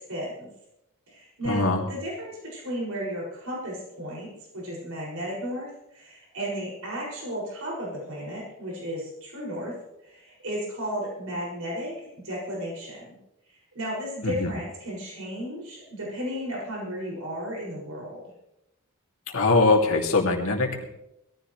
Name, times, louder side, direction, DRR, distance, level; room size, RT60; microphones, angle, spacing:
voice 1, 0.1-0.5 1.1-9.7 10.0-11.9 12.2-13.2 13.5-18.2, equal, 75° right, -4 dB, 6.6 m, -34 dB
voice 2, 1.4-1.8 14.2-14.5 19.3-20.9, left 3 dB, 70° left, 0 dB, 2.7 m, -22 dB
21.5 x 14.5 x 3.3 m, 0.85 s
head